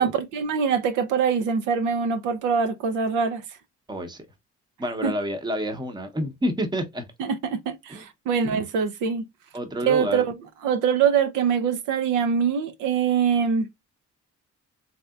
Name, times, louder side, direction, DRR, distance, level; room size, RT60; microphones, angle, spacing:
voice 1, 0.0-3.4 5.0-5.1 7.2-9.3 9.8-10.3 10.6-13.7, right 6 dB, 90° right, 0.6 m, -23 dB
voice 2, 3.9-4.2 4.8-7.0 7.9-8.0 9.5-10.3, equal, 15° right, 0.7 m, -28 dB
3.2 x 2.8 x 2.3 m
cardioid pair, 90°, 30 cm